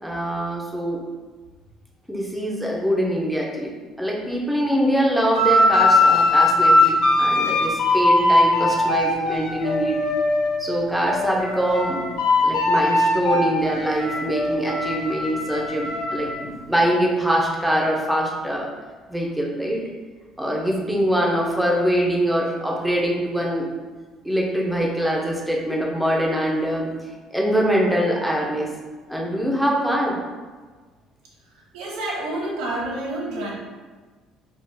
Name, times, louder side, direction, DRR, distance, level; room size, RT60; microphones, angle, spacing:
voice 1, 0.0-1.0 2.1-3.7 4.0-10.0 10.6-12.0 12.4-18.7 19.1-19.8 20.4-23.7 24.2-26.9 27.3-28.7 29.1-30.2, equal, ahead, -3 dB, 0.6 m, -23 dB
sound 1, 5.3-10.6 11.0-16.3, left 2 dB, 75° left, 1.0 m, -20 dB
voice 2, 31.7-33.5, right 1 dB, 85° right, -2 dB, 1.3 m, -28 dB
4.3 x 2.4 x 4.8 m, 1.4 s
cardioid pair, 170°, 0 cm